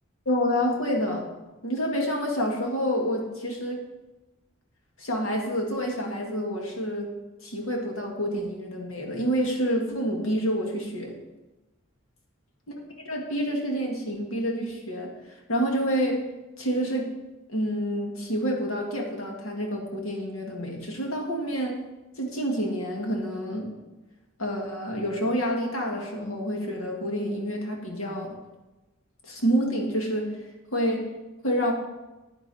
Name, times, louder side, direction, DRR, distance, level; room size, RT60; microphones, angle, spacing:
voice 1, 0.3-1.3 1.6-3.8 5.0-7.1 7.4-11.1 13.0-16.2 16.6-17.1 17.5-21.8 22.2-23.7 24.4-28.4 29.2-30.3 30.7-31.1 31.4-31.7, equal, 85° left, 1 dB, 2.1 m, -28 dB
10.0 x 9.7 x 4.2 m, 1.1 s
head